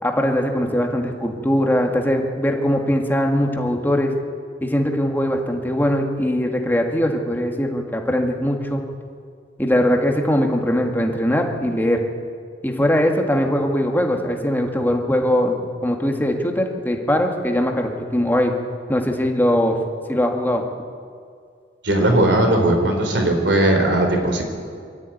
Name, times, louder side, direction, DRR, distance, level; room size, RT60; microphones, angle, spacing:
voice 1, 0.0-4.1 4.6-8.8 9.6-12.0 12.6-18.5 18.9-19.8 20.1-20.6, equal, 10° left, 2 dB, 2.0 m, -21 dB
voice 2, 21.8-24.4, right 1 dB, 75° right, 4 dB, 3.8 m, -18 dB
24.0 x 13.0 x 9.3 m, 2.2 s
head